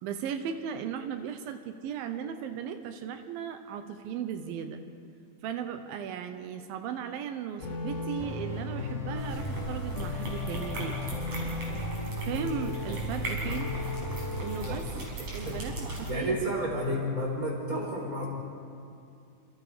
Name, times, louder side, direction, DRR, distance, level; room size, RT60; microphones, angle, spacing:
voice 1, 0.0-4.8 5.4-11.0 12.2-13.8 14.4-14.9 15.2-16.5, right 8 dB, 85° right, 8 dB, 2.8 m, -36 dB
sound 1, 7.6-14.7, left 3 dB, 30° left, 1.7 m, -35 dB
sound 2, 9.1-16.1, right 2 dB, 45° right, 6.5 m, -37 dB
voice 2, 16.1-18.3, equal, 25° right, 0 dB, 4.6 m, -31 dB
29.0 x 27.5 x 5.1 m, 2.5 s
omnidirectional pair, 4.0 m